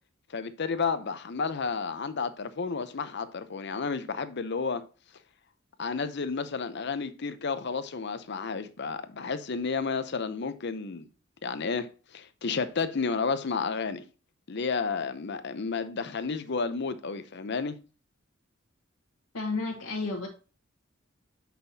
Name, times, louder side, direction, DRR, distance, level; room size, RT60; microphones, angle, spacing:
voice 1, 0.3-4.8 5.8-11.1 11.4-14.0 14.5-17.8, left 5 dB, 60° left, 0.7 m, -31 dB
voice 2, 19.3-20.3, left 3 dB, 75° left, 1.4 m, -31 dB
7.2 x 5.9 x 2.7 m
head